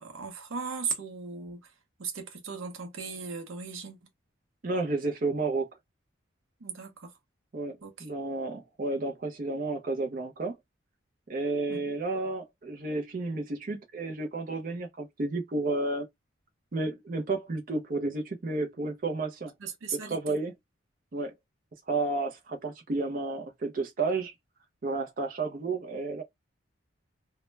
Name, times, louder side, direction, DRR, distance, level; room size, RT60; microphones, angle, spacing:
voice 1, 0.0-1.6 2.0-4.0 6.6-7.1 7.8-8.1 11.7-11.9 19.6-20.3, right 5 dB, 90° right, 0.6 m, -37 dB
voice 2, 4.6-5.7 7.5-10.6 11.3-16.1 16.7-19.5 19.9-20.5 21.1-21.3 21.9-24.3 24.8-26.2, right 3 dB, 45° right, 0.5 m, -31 dB
2.1 x 2.1 x 3.1 m
head